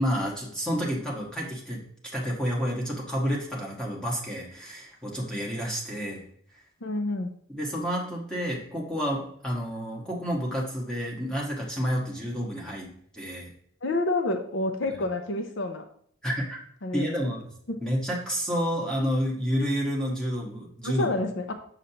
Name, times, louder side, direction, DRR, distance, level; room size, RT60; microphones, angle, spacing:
voice 1, 0.0-1.8 2.1-6.2 7.5-13.5 14.9-15.0 16.2-16.6 16.9-17.4 17.8-21.1, equal, 5° left, -3 dB, 1.4 m, -29 dB
voice 2, 6.8-7.3 13.8-15.8 16.8-17.1 17.7-17.8 20.8-21.5, left 2 dB, 55° left, 6 dB, 0.6 m, -28 dB
6.6 x 6.4 x 2.9 m, 0.65 s
head